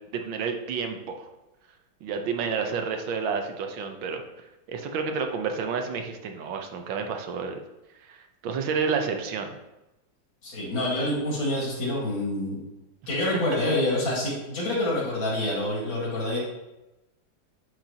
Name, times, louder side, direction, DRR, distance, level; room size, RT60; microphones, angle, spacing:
voice 1, 0.1-1.3 2.0-4.2 4.7-7.6 8.0-9.5, right 5 dB, 85° right, 4 dB, 1.6 m, -30 dB
voice 2, 10.4-12.6 13.1-16.4, left 1 dB, 90° left, -4 dB, 3.1 m, -27 dB
10.0 x 6.2 x 2.9 m, 0.99 s
omnidirectional pair, 2.1 m